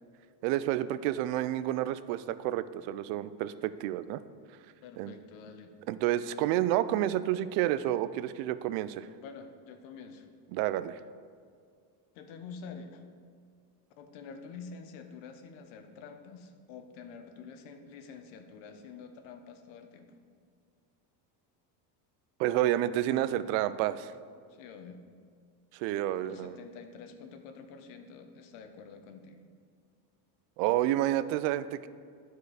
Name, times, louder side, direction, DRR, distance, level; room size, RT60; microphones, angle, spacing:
voice 1, 0.4-4.2 5.0-5.1 5.9-9.1 10.5-11.0 22.4-24.1 25.7-26.6 30.6-31.9, right 13 dB, 85° right, 14 dB, 0.6 m, -29 dB
voice 2, 4.8-5.7 9.1-10.3 12.1-13.0 14.0-20.1 24.5-25.0 26.2-29.5, left 5 dB, 65° left, 7 dB, 1.0 m, -47 dB
11.5 x 4.7 x 4.8 m, 2.1 s
cardioid pair, 155°, 49 cm